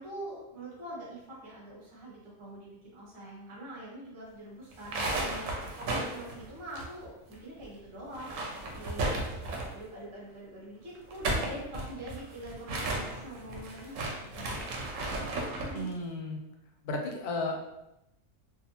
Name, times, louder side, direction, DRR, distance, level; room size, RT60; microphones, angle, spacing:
voice 1, 0.0-5.5 5.8-8.3 8.7-9.2 9.7-14.9 15.6-15.9, right 1 dB, 40° right, -5 dB, 0.4 m, -44 dB
Plastic Bag, 4.7-7.3 7.6-7.7 8.1-9.8 10.9-15.8, right 2 dB, 70° right, 0.9 m, -34 dB
voice 2, 15.7-16.4 16.8-17.6, left 2 dB, 90° left, 1 dB, 1.1 m, -33 dB
2.6 x 2.3 x 2.8 m, 0.90 s
omnidirectional pair, 1.6 m